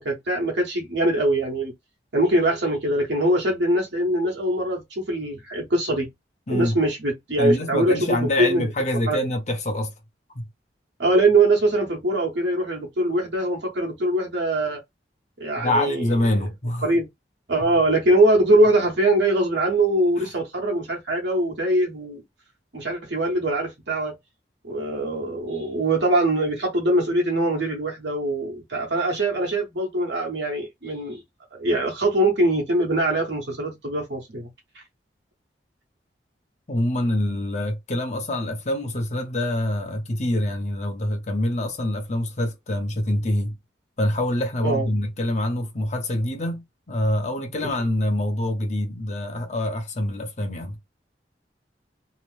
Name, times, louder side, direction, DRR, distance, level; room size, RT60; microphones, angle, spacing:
voice 1, 0.0-1.7 2.1-6.1 6.5-8.7 9.1-9.2 11.0-14.8 15.4-16.0 16.8-17.1 17.5-22.2 22.7-24.1 24.6-31.2 31.5-34.5 44.6-44.9, right 1 dB, 75° right, 1.1 m, -22 dB
voice 2, 7.4-9.9 10.3-10.4 15.6-16.9 20.2-20.3 36.7-43.6 44.0-50.8, left 1 dB, 40° left, 0.8 m, -25 dB
2.9 x 2.0 x 3.2 m
head